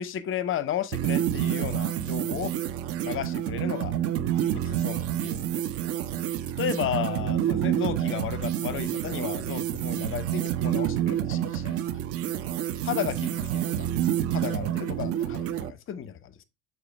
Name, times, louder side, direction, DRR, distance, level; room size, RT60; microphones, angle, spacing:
voice 1, 0.0-2.5 3.0-3.9 4.5-5.6 6.6-11.8 12.8-13.9 14.3-16.4, left 9 dB, 35° left, 0.7 m, -33 dB
sound 1, 0.9-15.7, right 11 dB, 40° right, 0.5 m, -28 dB
6.7 x 4.3 x 3.3 m
hypercardioid pair, 70°, 38 cm